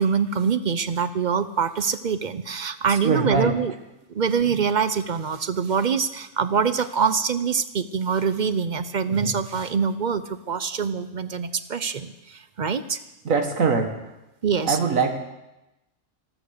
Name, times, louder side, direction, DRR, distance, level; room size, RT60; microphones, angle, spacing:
voice 1, 0.0-3.7 4.1-13.0 14.4-14.8, right 6 dB, 45° right, 12 dB, 0.6 m, -24 dB
voice 2, 2.9-3.6 13.2-14.1 14.7-15.2, right 4 dB, 90° right, 5 dB, 2.0 m, -22 dB
14.0 x 13.5 x 6.6 m, 0.96 s
omnidirectional pair, 1.4 m